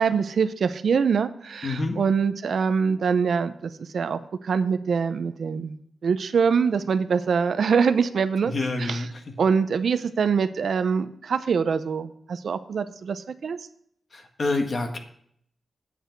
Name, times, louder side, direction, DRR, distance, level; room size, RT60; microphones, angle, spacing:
voice 1, 0.0-5.8 6.0-8.5 8.9-9.0 9.4-13.6, right 6 dB, 75° right, 11 dB, 0.6 m, -24 dB
voice 2, 1.6-2.0 8.4-9.4 14.1-15.0, left 2 dB, 50° left, 4 dB, 1.5 m, -28 dB
8.4 x 8.0 x 4.5 m, 0.67 s
cardioid pair, 80°, 0 cm